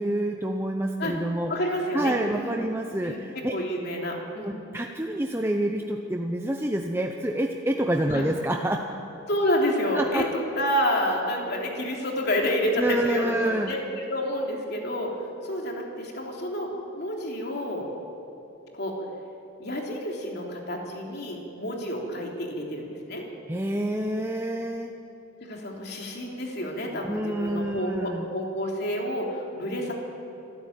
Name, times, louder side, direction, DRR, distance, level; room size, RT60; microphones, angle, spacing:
voice 1, 0.0-1.5 1.9-3.6 4.4-8.9 9.9-10.3 12.8-13.7 23.5-24.9 27.0-28.3, right 1 dB, 10° right, 2 dB, 0.8 m, -27 dB
voice 2, 1.5-2.6 3.0-4.6 8.1-8.3 9.3-15.1 15.4-17.9 18.7-19.0 19.6-23.2 25.4-29.9, equal, 50° left, 0 dB, 3.4 m, -29 dB
26.0 x 13.5 x 8.9 m, 2.8 s
head